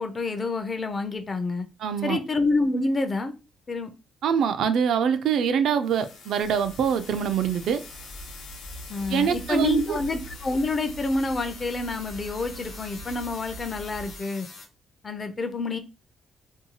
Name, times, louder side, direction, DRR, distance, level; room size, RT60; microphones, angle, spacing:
voice 1, 0.0-1.7 2.0-3.3 3.7-3.9 8.9-14.5 15.0-15.8, left 3 dB, 35° left, 0.4 m, -28 dB
voice 2, 1.8-2.2 4.2-7.8 9.1-10.0, right 7 dB, 75° right, 0.3 m, -24 dB
sound 1, 5.8-14.6, left 4 dB, 80° left, 0.7 m, -45 dB
sound 2, 6.4-14.2, right 1 dB, 55° left, 0.9 m, -43 dB
2.6 x 2.2 x 2.8 m
cardioid pair, 90°, 0 cm